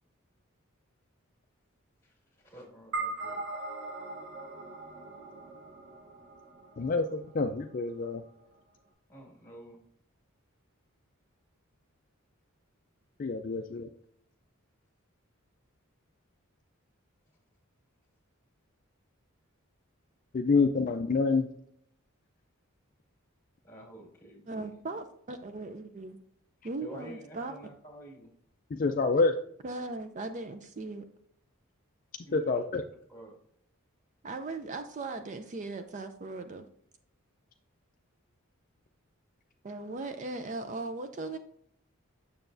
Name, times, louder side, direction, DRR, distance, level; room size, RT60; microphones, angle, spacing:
voice 1, 2.0-3.4 9.1-9.8 23.6-24.7 26.8-28.3 32.2-32.8 33.1-33.3, right 1 dB, 10° left, 0 dB, 1.9 m, -49 dB
sound 1, 2.9-7.5, right 3 dB, 60° right, 1.1 m, -40 dB
voice 2, 6.8-8.2 13.2-13.9 20.3-21.5 28.7-29.3 32.3-32.8, left 4 dB, 40° left, 6 dB, 0.4 m, -27 dB
voice 3, 24.5-26.2 26.6-27.6 29.6-31.0 34.2-36.7 39.6-41.4, right 3 dB, 35° right, 8 dB, 0.4 m, -38 dB
6.8 x 6.8 x 2.6 m, 0.67 s
head